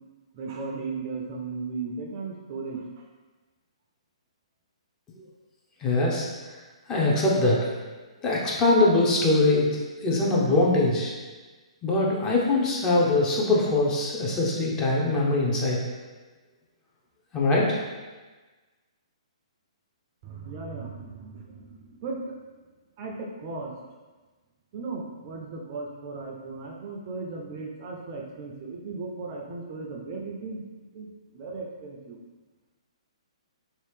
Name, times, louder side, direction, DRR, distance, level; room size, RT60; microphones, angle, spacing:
voice 1, 0.3-3.1 20.2-22.4 23.0-23.7 24.7-30.6 30.9-32.2, right 3 dB, 35° right, 0 dB, 0.5 m, -36 dB
voice 2, 5.8-6.3 6.9-7.7 8.2-11.1 11.8-15.8 17.3-17.8, left 2 dB, 20° left, -4 dB, 0.6 m, -22 dB
3.0 x 2.8 x 3.2 m, 1.3 s
figure-of-eight pair, 125°, 3 cm